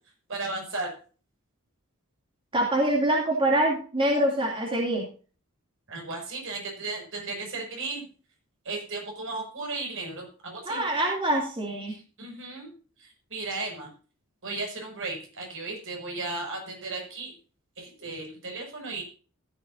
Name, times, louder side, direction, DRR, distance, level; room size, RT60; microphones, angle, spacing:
voice 1, 0.3-0.9 5.9-8.1 8.6-10.8 11.9-12.7 13.0-13.9 14.4-17.3 17.8-19.0, right 3 dB, 65° right, 2 dB, 6.2 m, -35 dB
voice 2, 2.5-5.0 10.7-11.9, right 1 dB, 25° right, -1 dB, 2.7 m, -25 dB
15.0 x 11.5 x 2.7 m, 0.38 s
head